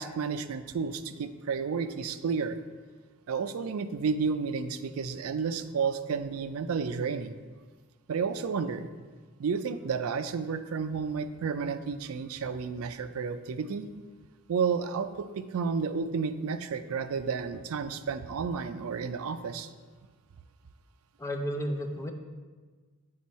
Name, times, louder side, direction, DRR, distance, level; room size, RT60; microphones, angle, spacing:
voice 1, 0.0-2.6 3.3-7.4 8.1-8.9 9.4-13.9 14.5-19.7, right 5 dB, 75° right, 10 dB, 0.4 m, -31 dB
voice 2, 21.2-22.1, equal, 15° left, 3 dB, 0.5 m, -32 dB
7.8 x 4.4 x 4.1 m, 1.4 s
head